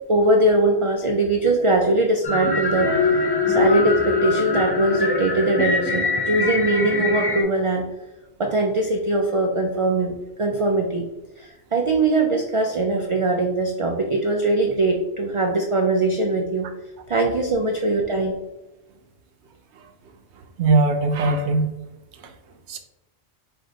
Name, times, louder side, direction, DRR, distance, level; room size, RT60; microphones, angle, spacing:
voice 1, 0.1-3.0 3.5-7.9 8.4-11.0 11.4-16.7 17.1-18.3, right 2 dB, 55° right, 2 dB, 0.3 m, -21 dB
sound 1, 2.2-7.4, left 3 dB, 35° left, 0.4 m, -23 dB
voice 2, 20.6-21.7 22.2-22.3 22.7-22.8, right 3 dB, 80° right, 6 dB, 0.9 m, -20 dB
4.9 x 2.5 x 3.8 m, 0.99 s
omnidirectional pair, 1.1 m